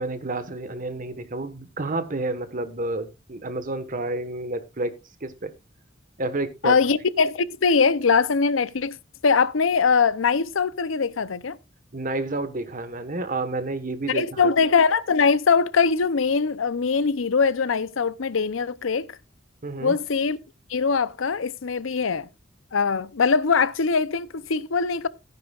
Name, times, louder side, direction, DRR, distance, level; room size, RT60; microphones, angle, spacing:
voice 1, 0.0-4.9 5.2-5.5 6.2-6.8 11.9-14.5 19.6-20.0, right 2 dB, 45° right, 1.3 m, -30 dB
voice 2, 6.6-9.0 9.2-11.6 14.1-19.2 19.8-20.4 20.7-22.3 22.7-25.1, left 5 dB, 80° left, 0.7 m, -22 dB
15.0 x 9.9 x 2.4 m
head